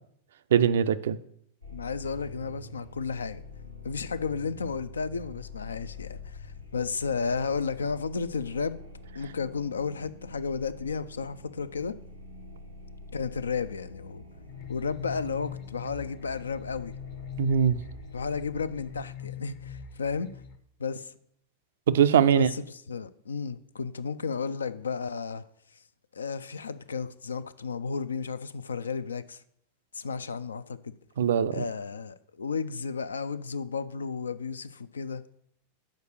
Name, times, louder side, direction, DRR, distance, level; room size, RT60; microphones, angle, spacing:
voice 1, 0.5-1.2 17.4-17.8 21.9-22.5 31.2-31.6, right 8 dB, 60° right, 0.4 m, -21 dB
sound 1, 1.6-19.0, left 2 dB, 90° left, 1.1 m, -46 dB
voice 2, 1.7-3.4 3.8-8.8 9.1-12.0 13.1-14.2 14.7-16.9 18.1-20.3 20.8-21.1 22.3-25.4 26.1-29.4 29.9-30.9 31.5-35.4, left 5 dB, 70° left, 0.3 m, -33 dB
sound 2, 14.5-20.6, left 9 dB, 40° left, 0.7 m, -42 dB
6.6 x 4.8 x 6.4 m
figure-of-eight pair, 90°, 0 cm